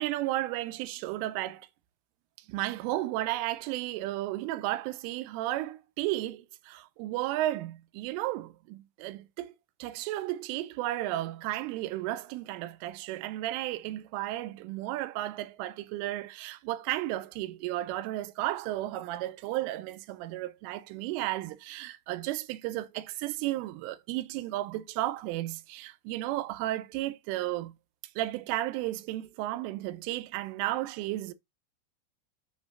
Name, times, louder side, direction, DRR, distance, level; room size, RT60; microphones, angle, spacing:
voice 1, 0.0-1.7 2.5-9.5 9.8-27.7 28.2-31.3, right 15 dB, 85° right, 3.1 m, -33 dB
9.6 x 4.7 x 2.5 m
omnidirectional pair, 5.9 m